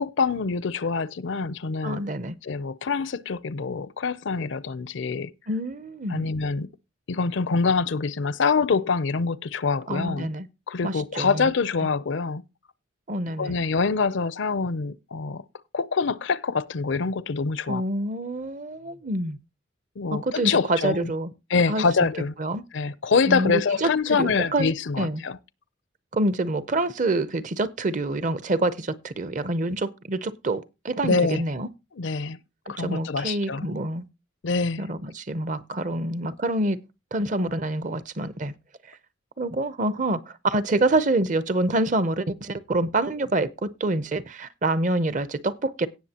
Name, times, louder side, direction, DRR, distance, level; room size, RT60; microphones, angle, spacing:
voice 1, 0.0-2.1 2.4-5.3 6.1-6.7 7.1-10.3 10.7-12.4 13.4-15.4 15.7-17.8 20.0-21.1 21.5-22.3 22.7-25.4 31.0-31.4 32.0-32.4 32.7-33.7 34.4-34.8, left 4 dB, 65° left, 0.5 m, -25 dB
voice 2, 1.8-2.4 5.5-6.3 9.9-10.5 10.8-11.4 13.1-13.6 17.7-19.4 20.1-21.3 21.7-21.8 22.4-22.6 23.3-24.7 25.0-25.2 26.1-31.7 32.8-34.0 34.8-36.8 37.1-38.5 39.4-45.9, right 2 dB, 40° right, 0.6 m, -26 dB
17.5 x 6.6 x 2.8 m
head